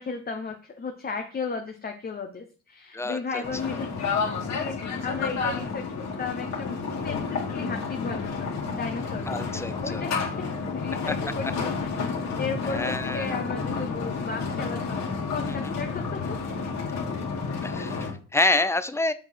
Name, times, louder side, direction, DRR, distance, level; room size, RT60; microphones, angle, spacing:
voice 1, 0.0-4.1 4.5-5.9 6.2-6.7 7.0-12.0 12.4-16.5 18.5-18.7, left 4 dB, 30° left, 4 dB, 0.9 m, -35 dB
voice 2, 2.9-3.4 9.3-10.0 12.7-13.3 17.6-19.1, left 2 dB, 10° left, 13 dB, 0.6 m, -27 dB
sound 1, 3.4-18.1, left 5 dB, 60° left, 2.3 m, -30 dB
7.3 x 4.8 x 4.4 m, 0.38 s
cardioid pair, 90°, 30 cm